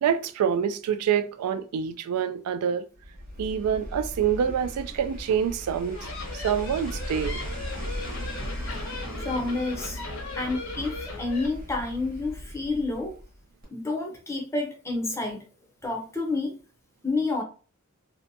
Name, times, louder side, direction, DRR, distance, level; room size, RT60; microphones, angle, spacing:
voice 1, 0.0-2.8 3.4-6.0 6.3-7.7, right 8 dB, 85° right, 0.3 m, -26 dB
sound 1, 3.0-13.4 13.6-13.7, equal, 40° right, 1.1 m, -37 dB
sound 2, 5.7-11.5, left 3 dB, 65° left, 0.8 m, -38 dB
voice 2, 9.2-10.0 10.3-13.2 13.7-15.4 15.8-16.5 17.0-17.4, left 3 dB, 10° left, 0.5 m, -29 dB
2.6 x 2.2 x 2.6 m
head